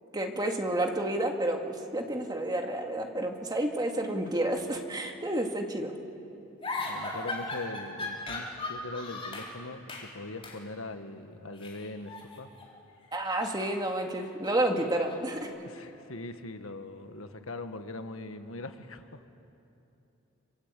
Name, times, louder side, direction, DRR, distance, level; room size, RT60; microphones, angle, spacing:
voice 1, 0.1-5.9 13.1-15.5, right 1 dB, 20° right, 2 dB, 2.1 m, -30 dB
sound 1, 6.6-9.5 9.9-10.1 10.4-10.6 11.5-12.7 13.0-15.4, left 2 dB, 25° left, 4.2 m, -38 dB
voice 2, 6.8-12.5 15.6-19.2, left 2 dB, 75° left, 8 dB, 1.5 m, -41 dB
26.0 x 26.0 x 8.4 m, 2.9 s
head